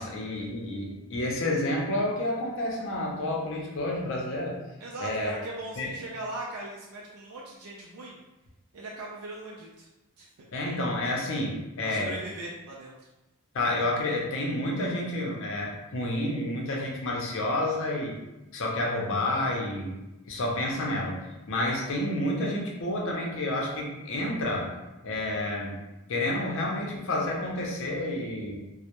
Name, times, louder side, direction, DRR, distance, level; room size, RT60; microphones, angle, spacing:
voice 1, 0.0-4.6 5.0-5.3 5.8-5.9 10.5-12.1 13.5-18.2 18.5-19.9 20.3-24.7 25.0-25.8 26.1-28.6, left 1 dB, 60° left, -1 dB, 0.5 m, -29 dB
voice 2, 4.8-8.2 8.7-9.9 10.2-10.3 11.8-13.1, right 2 dB, 80° right, -3 dB, 0.4 m, -39 dB
2.2 x 2.0 x 2.8 m, 1.0 s
head